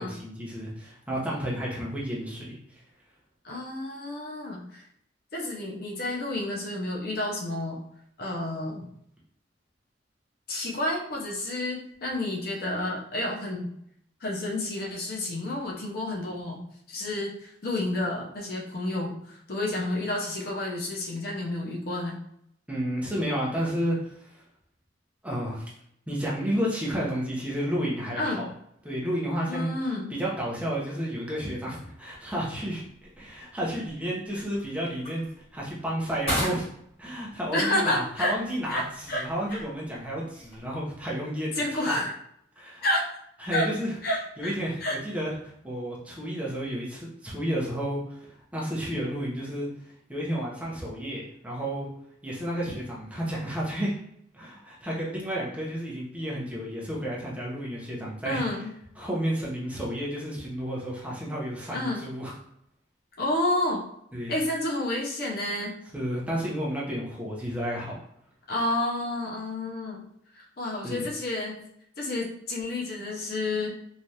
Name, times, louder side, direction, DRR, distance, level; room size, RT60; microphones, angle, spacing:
voice 1, 0.0-2.8 22.7-24.4 25.2-25.7 26.1-28.5 28.8-29.7 30.1-32.8 33.2-36.7 37.0-42.0 42.6-42.8 43.4-44.0 44.4-45.3 45.6-51.9 52.2-53.9 54.3-58.4 59.0-62.3 64.1-64.4 65.9-67.9 70.8-71.1, equal, 5° right, -5 dB, 0.6 m, -31 dB
voice 2, 3.4-4.8 5.3-7.8 8.2-8.9 10.5-13.7 14.2-16.6 16.9-22.2 28.2-28.5 29.5-30.2 37.5-38.3 38.7-39.2 39.5-39.6 41.6-42.2 42.8-43.2 43.5-43.7 44.0-45.0 58.2-58.7 61.7-62.0 63.2-63.8 64.3-65.8 68.5-70.0 70.3-71.6 72.0-73.7, left 1 dB, 50° left, -2 dB, 0.6 m, -30 dB
sound 1, 31.9-41.1, equal, 35° left, 1.5 m, -40 dB
3.2 x 2.4 x 2.7 m, 0.73 s
head